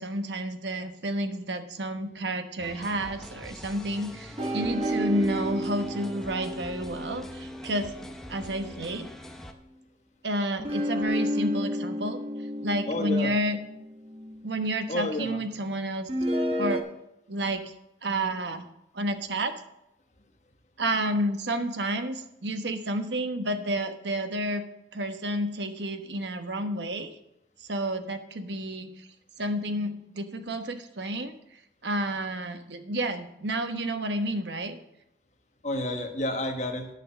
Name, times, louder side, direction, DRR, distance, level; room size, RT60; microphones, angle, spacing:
voice 1, 0.0-7.9 8.3-9.1 10.2-12.2 12.6-13.6 14.4-16.1 16.6-16.8 17.3-17.7 18.0-18.7 18.9-19.5 20.8-24.6 24.9-27.1 27.6-28.9 29.4-31.3 31.8-34.8, right 1 dB, 85° right, 8 dB, 1.1 m, -30 dB
sound 1, 2.6-9.5, equal, 5° left, 0.7 m, -44 dB
sound 2, 4.4-8.9 10.6-14.8 16.1-16.8, equal, 35° right, 1.2 m, -32 dB
voice 2, 12.9-13.3 14.9-15.4 35.6-36.9, left 1 dB, 40° left, 2 dB, 1.3 m, -30 dB
10.5 x 6.0 x 7.1 m, 0.83 s
head